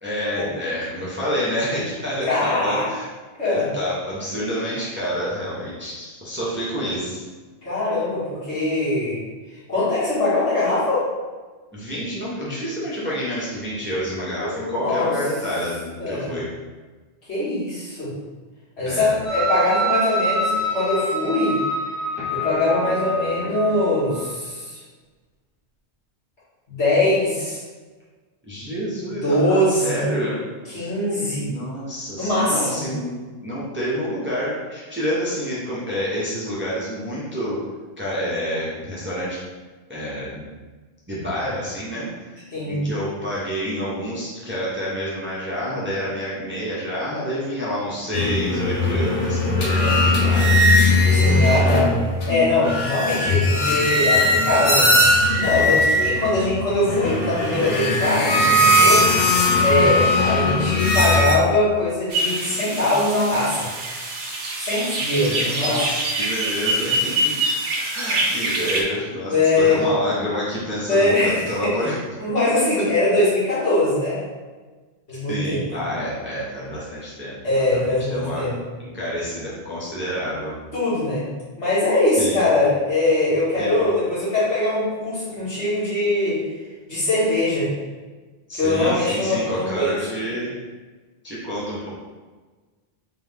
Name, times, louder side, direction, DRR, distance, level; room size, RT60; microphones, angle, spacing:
voice 1, 0.0-3.1 3.4-7.2 11.7-16.5 18.8-19.2 28.5-30.4 31.4-33.1 33.4-37.6 38.0-39.4 39.9-40.5 41.1-42.4 42.6-50.6 65.2-67.3 67.9-71.9 75.3-78.4 78.8-80.5 82.2-82.4 83.5-83.9 88.5-90.5 91.2-91.9, equal, 10° right, -7 dB, 0.8 m, -28 dB
voice 2, 2.3-2.9 3.4-3.7 7.6-9.2 9.7-11.0 14.4-15.1 16.0-16.3 17.3-18.1 18.8-21.6 22.3-24.8 26.7-27.6 29.2-30.1 30.7-31.5 32.2-32.9 42.5-42.8 51.1-51.9 52.3-55.0 55.4-59.1 59.6-63.7 64.6-65.8 69.3-69.8 70.9-71.7 72.2-74.2 75.1-75.6 77.4-78.6 80.7-81.2 81.6-86.4 86.9-87.7 88.5-90.0, left 2 dB, 65° left, -10 dB, 2.0 m, -22 dB
sound 1, 19.2-24.3, right 1 dB, 25° left, 0.3 m, -26 dB
sound 2, 48.1-61.4, left 1 dB, 85° left, 1.2 m, -19 dB
sound 3, 62.1-68.8, right 1 dB, 85° right, 1.1 m, -25 dB
3.5 x 3.4 x 3.4 m, 1.3 s
omnidirectional pair, 1.2 m